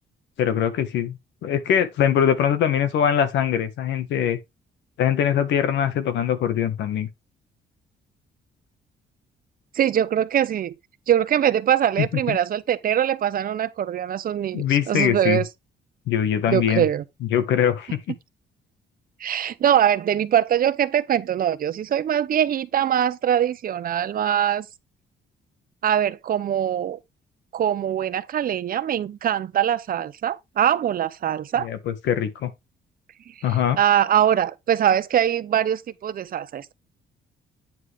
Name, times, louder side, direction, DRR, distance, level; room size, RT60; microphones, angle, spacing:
voice 1, 0.4-4.4 5.0-7.1 12.0-12.4 14.5-15.4 16.1-16.8 17.2-18.1 31.6-32.5 33.4-33.8, left 9 dB, 85° left, 1.5 m, -22 dB
voice 2, 9.7-10.7 11.1-15.5 16.5-17.0 19.2-24.7 25.8-27.0 27.5-31.7 33.3-36.7, right 10 dB, 55° right, 0.8 m, -22 dB
9.2 x 4.9 x 3.6 m
cardioid pair, 105°, 18 cm